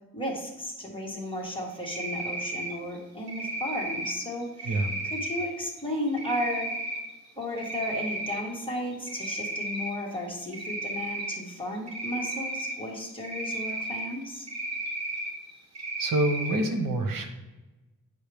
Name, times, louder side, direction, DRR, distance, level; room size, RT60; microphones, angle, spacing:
voice 1, 0.1-6.7 7.4-14.5, left 1 dB, 15° left, -2 dB, 1.8 m, -34 dB
Cricket, 1.8-2.7 3.3-4.1 4.6-5.4 6.2-7.0 7.4-8.4 8.8-9.9 10.5-11.3 11.9-12.7 13.2-14.1 14.5-15.3 15.7-16.6, right 1 dB, 50° right, 1.4 m, -33 dB
voice 2, 16.0-17.3, right 2 dB, 80° right, 5 dB, 1.1 m, -26 dB
9.8 x 5.3 x 3.5 m, 1.1 s
wide cardioid pair, 125°, 33 cm